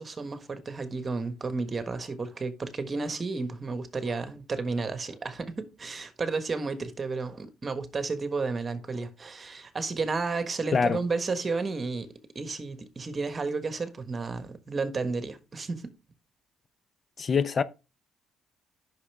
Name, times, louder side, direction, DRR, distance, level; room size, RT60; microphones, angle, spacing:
voice 1, 0.0-12.1 12.3-15.8, right 4 dB, 30° right, 1.4 m, -32 dB
voice 2, 17.2-17.6, left 5 dB, 40° left, 0.6 m, -24 dB
9.7 x 6.1 x 3.4 m
cardioid pair, 90°, 0 cm